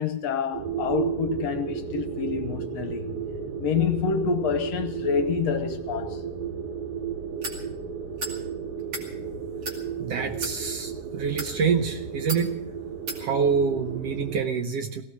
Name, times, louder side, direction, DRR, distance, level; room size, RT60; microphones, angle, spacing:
voice 1, 0.0-3.0 3.6-6.2, left 6 dB, 70° left, 1.8 m, -27 dB
sound 1, 0.5-14.5, right 7 dB, 85° right, 4.3 m, -33 dB
sound 2, 7.4-7.6 8.2-8.4 8.8-9.1 9.6-9.8 10.3-10.5 11.2-11.5 12.3-12.4 13.1-13.2, right 2 dB, 40° right, 2.9 m, -33 dB
voice 2, 10.0-12.6 13.2-15.0, right 6 dB, 65° right, 1.7 m, -26 dB
17.5 x 17.0 x 4.8 m
omnidirectional pair, 3.4 m